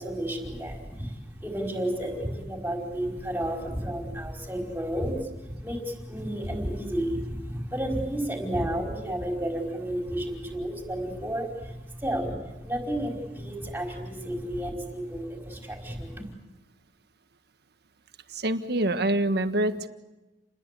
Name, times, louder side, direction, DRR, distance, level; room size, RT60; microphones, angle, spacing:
voice 1, 0.0-5.3 5.6-12.4 12.6-16.3, right 1 dB, 10° right, 1 dB, 5.1 m, -32 dB
voice 2, 18.3-19.9, right 1 dB, 65° right, 9 dB, 1.5 m, -25 dB
29.5 x 21.0 x 8.4 m, 1.1 s
head